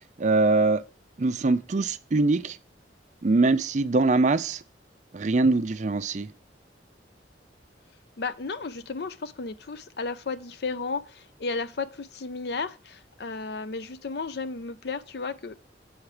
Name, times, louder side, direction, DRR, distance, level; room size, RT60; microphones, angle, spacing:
voice 1, 0.2-0.8 1.2-2.6 3.2-4.6 5.1-6.3, right 3 dB, 40° right, 0.4 m, -23 dB
voice 2, 8.2-15.5, left 4 dB, 60° left, 0.5 m, -33 dB
7.9 x 5.9 x 4.9 m
head